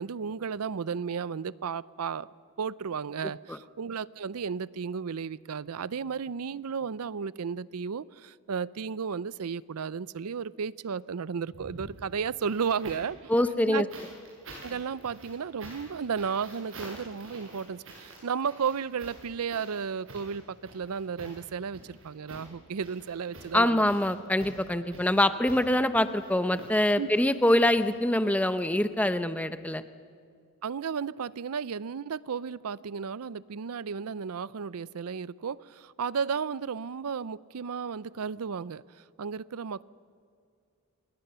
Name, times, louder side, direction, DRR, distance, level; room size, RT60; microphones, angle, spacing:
voice 1, 0.0-2.3 2.6-13.3 13.6-13.9 14.6-23.8 27.0-27.1 30.6-39.8, right 6 dB, 80° right, 19 dB, 0.5 m, -34 dB
sound 1, 11.5-13.2 13.9-28.4 29.5-29.6, right 2 dB, 60° right, 7.0 m, -48 dB
voice 2, 13.3-13.9 23.5-29.8, left 1 dB, 5° left, 11 dB, 0.7 m, -24 dB
27.5 x 21.0 x 6.8 m, 2.3 s
head